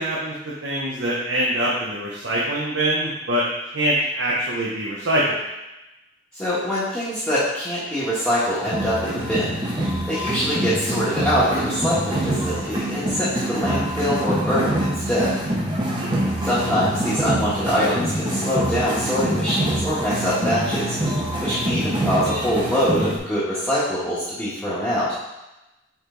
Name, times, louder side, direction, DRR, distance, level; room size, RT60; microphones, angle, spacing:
voice 1, 0.0-3.4 3.7-5.4 16.0-16.3, right 1 dB, 65° right, -5 dB, 1.0 m, -24 dB
voice 2, 6.3-9.5 10.1-15.3 16.4-21.0 21.4-25.2, equal, 5° left, -13 dB, 1.5 m, -24 dB
sound 1, 8.6-23.2, right 1 dB, 25° right, 1.1 m, -25 dB
5.2 x 4.9 x 3.9 m, 0.97 s
head